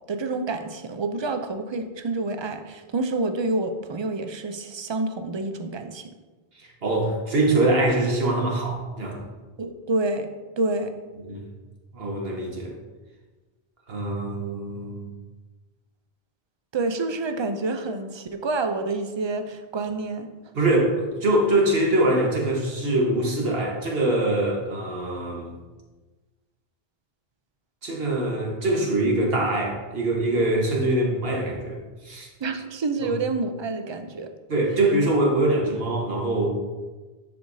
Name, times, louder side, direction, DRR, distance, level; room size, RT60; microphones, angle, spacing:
voice 1, 0.1-6.0 9.6-10.3 10.6-10.9 16.7-20.3 32.4-34.3, right 3 dB, 40° right, 7 dB, 0.4 m, -28 dB
voice 2, 6.5-9.2 11.2-11.5 11.9-12.7 13.9-15.1 20.5-25.5 27.8-32.3 33.0-33.1 34.5-36.5, right 1 dB, 70° right, -1 dB, 1.5 m, -23 dB
10.0 x 4.8 x 2.7 m, 1.2 s
omnidirectional pair, 1.0 m